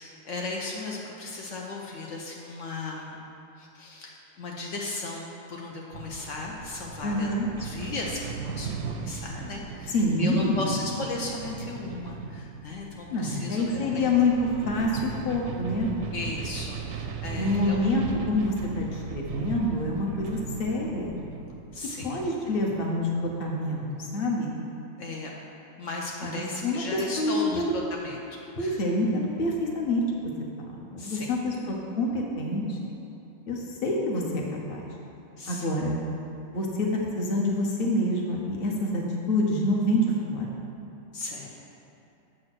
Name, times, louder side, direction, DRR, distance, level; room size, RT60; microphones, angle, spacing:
voice 1, 0.0-3.2 3.6-7.3 7.6-14.1 16.1-17.8 21.7-22.2 25.0-25.4 25.8-28.2 28.6-28.8 31.0-31.3 35.4-35.7 41.1-41.5, left 2 dB, 70° left, -2 dB, 1.1 m, -36 dB
sound 1, 5.9-23.4, right 6 dB, 85° right, 1.0 m, -38 dB
voice 2, 7.0-7.5 9.9-10.6 13.1-15.9 17.4-21.1 22.0-24.5 26.2-27.7 28.5-30.3 30.9-32.9 33.5-34.4 34.7-34.8 35.5-36.0 36.5-40.5, left 1 dB, 50° left, -1 dB, 1.1 m, -27 dB
7.6 x 4.1 x 6.1 m, 2.8 s
omnidirectional pair, 1.4 m